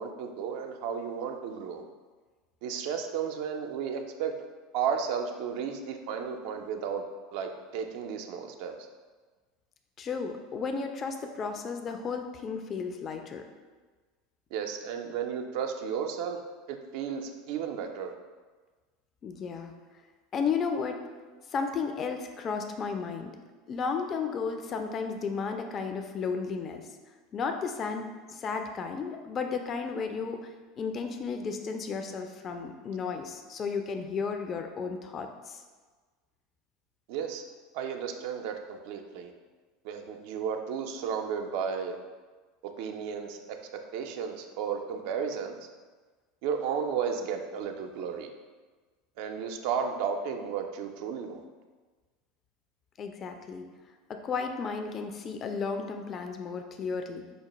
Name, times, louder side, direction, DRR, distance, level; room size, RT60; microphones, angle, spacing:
voice 1, 0.0-1.8 2.6-4.4 4.7-7.0 7.3-8.9 14.5-16.4 16.7-18.1 37.1-37.4 37.7-39.3 39.8-42.0 42.6-45.7 46.4-48.3 49.2-51.4, right 7 dB, 60° right, 5 dB, 0.3 m, -33 dB
voice 2, 10.0-13.5 19.2-19.7 20.3-21.0 21.5-23.3 23.7-26.9 27.3-35.6 53.0-53.7 54.1-57.3, left 5 dB, 35° left, 5 dB, 0.3 m, -33 dB
5.1 x 2.1 x 2.9 m, 1.4 s
figure-of-eight pair, 75°, 0 cm